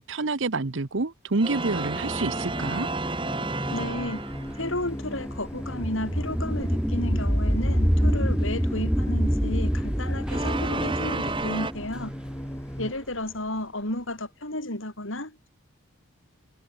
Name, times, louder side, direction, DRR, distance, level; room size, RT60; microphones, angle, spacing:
voice 1, 0.0-2.9, right 3 dB, 60° right, 1.0 m, -28 dB
sound 1, 1.4-4.7 10.3-11.7, right 2 dB, 25° right, 4.3 m, -31 dB
sound 2, 2.4-12.9, equal, 15° left, 3.8 m, -38 dB
voice 2, 3.7-4.3 4.6-12.1 12.8-15.5, left 1 dB, 70° left, 6.4 m, -33 dB
sound 3, 4.0-13.0, equal, 5° right, 2.2 m, -26 dB
head